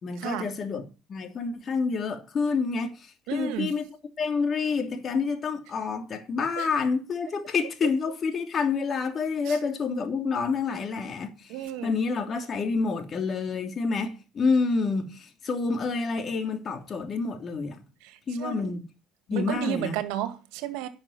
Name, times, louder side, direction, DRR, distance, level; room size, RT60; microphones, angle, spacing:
voice 1, 0.0-3.9 4.2-17.8 18.3-18.9 19.3-20.0, left 4 dB, 45° left, 3.0 m, -28 dB
voice 2, 3.3-3.8 6.6-6.7 9.5-9.6 11.5-11.9 18.4-18.7 19.3-20.9, right 11 dB, 80° right, 2.0 m, -32 dB
11.0 x 6.4 x 7.4 m
supercardioid pair, 70°, 0 cm